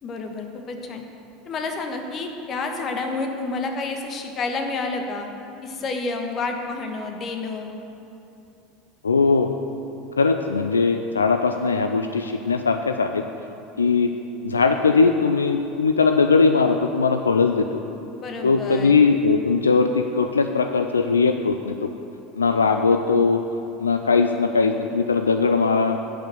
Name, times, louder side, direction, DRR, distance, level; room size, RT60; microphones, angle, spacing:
voice 1, 0.0-1.0 1.4-5.3 5.6-7.7 18.2-19.0, left 3 dB, 40° left, 4 dB, 1.3 m, -29 dB
voice 2, 9.0-9.5 10.2-13.2 13.8-14.1 14.4-17.8 18.4-21.7 22.4-23.4 23.8-26.0, left 4 dB, 85° left, 7 dB, 0.3 m, -20 dB
10.5 x 5.3 x 7.8 m, 2.8 s
figure-of-eight pair, 75°, 0 cm